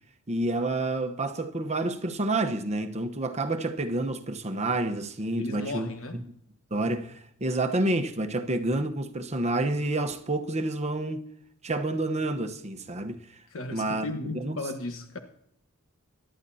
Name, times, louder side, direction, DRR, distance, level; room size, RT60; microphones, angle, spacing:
voice 1, 0.3-5.9 6.1-6.2 6.7-11.2 11.6-13.4 13.7-14.1 14.3-14.6, right 2 dB, 30° right, 1.0 m, -29 dB
voice 2, 5.4-6.2 13.5-15.2, left 2 dB, 60° left, 1.3 m, -35 dB
23.0 x 11.5 x 2.8 m
head